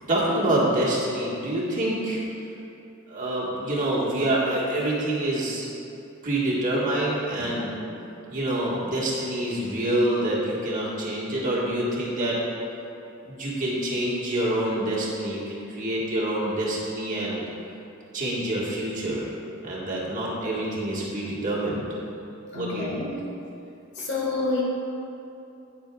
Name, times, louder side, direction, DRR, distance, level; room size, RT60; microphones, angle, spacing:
voice 1, 0.1-2.2 3.1-5.7 6.2-7.7 8.3-12.4 13.2-17.4 18.1-19.3 19.6-21.9 22.5-22.9, right 1 dB, 40° right, -6 dB, 1.6 m, -26 dB
voice 2, 22.5-23.3 23.9-24.6, left 3 dB, 55° left, -3 dB, 1.7 m, -29 dB
10.5 x 8.8 x 2.4 m, 2.8 s
head